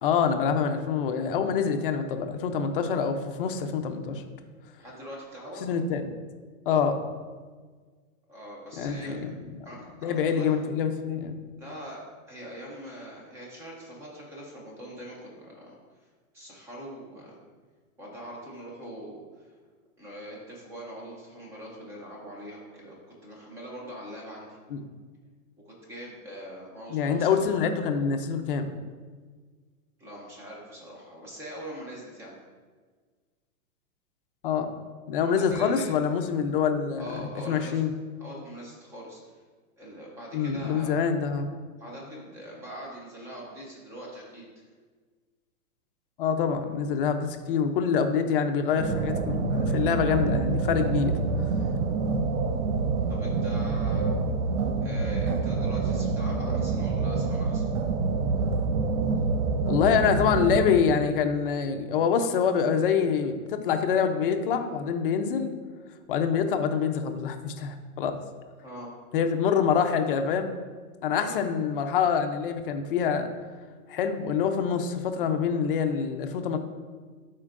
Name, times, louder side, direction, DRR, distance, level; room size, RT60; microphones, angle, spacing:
voice 1, 0.0-4.2 5.6-6.1 6.7-7.0 8.8-9.6 10.0-11.4 24.7-24.8 26.9-28.7 34.4-34.7 35.1-37.9 40.3-41.5 46.2-51.2 59.7-65.5 66.1-68.2 69.1-70.5 71.0-73.3 73.9-76.6, left 6 dB, 40° left, 6 dB, 0.5 m, -26 dB
voice 2, 4.8-5.7 8.3-9.2 9.6-10.6 11.6-12.0 12.3-15.7 16.3-17.4 18.0-19.5 20.0-24.6 25.6-27.5 30.0-32.4 35.2-35.9 37.0-37.8 38.2-39.4 39.8-41.0 41.8-44.6 53.1-54.1 54.8-57.7 68.6-68.9 71.2-71.4, equal, 5° right, -3 dB, 0.5 m, -42 dB
sound 1, 48.8-60.8, right 4 dB, 55° right, 0.6 m, -27 dB
12.0 x 4.5 x 2.5 m, 1.5 s
hypercardioid pair, 160°, 44 cm